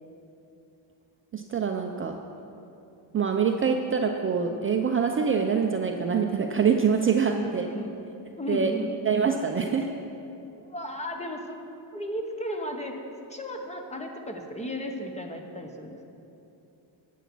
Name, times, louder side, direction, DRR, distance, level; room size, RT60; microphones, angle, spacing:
voice 1, 1.3-2.2 3.1-7.6 8.5-8.7 9.1-9.9, right 6 dB, 30° right, 3 dB, 0.5 m, -25 dB
voice 2, 7.2-7.9 8.4-8.9 10.7-11.6 11.9-13.0 13.3-16.0, equal, 15° left, 3 dB, 1.0 m, -34 dB
11.0 x 8.3 x 6.0 m, 2.9 s
cardioid pair, 125°, 46 cm